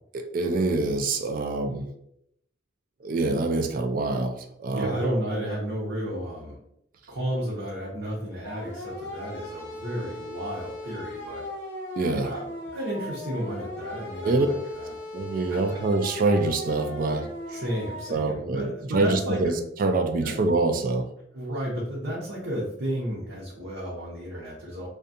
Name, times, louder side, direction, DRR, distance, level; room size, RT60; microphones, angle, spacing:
voice 1, 0.1-1.9 3.0-5.0 12.0-12.3 14.2-14.5 15.1-17.6 18.1-21.1, right 3 dB, 50° right, 7 dB, 0.3 m, -25 dB
voice 2, 4.7-6.6 7.1-11.5 12.2-14.9 15.5-15.8 17.5-19.5 20.2-20.4 21.3-24.9, equal, 70° right, -6 dB, 0.7 m, -32 dB
sound 1, 8.4-18.1, left 1 dB, 70° left, 1.0 m, -38 dB
2.6 x 2.2 x 2.5 m, 0.74 s
head